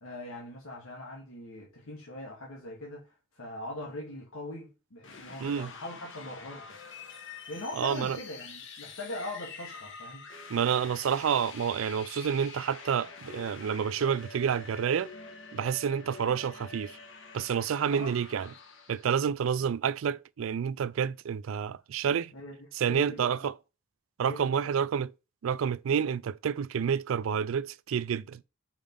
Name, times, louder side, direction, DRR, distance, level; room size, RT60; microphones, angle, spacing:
voice 1, 0.0-6.6 7.5-10.2 17.9-18.1 22.3-23.5 24.2-24.6, left 1 dB, 90° left, 2.0 m, -41 dB
sound 1, 5.0-19.2, left 4 dB, 65° left, 1.7 m, -46 dB
voice 2, 7.8-8.2 10.5-15.1 15.5-17.0 17.3-18.5 18.9-22.3 22.8-23.5 24.2-25.1 25.4-28.4, right 7 dB, 75° right, 0.4 m, -29 dB
5.2 x 5.0 x 5.3 m
head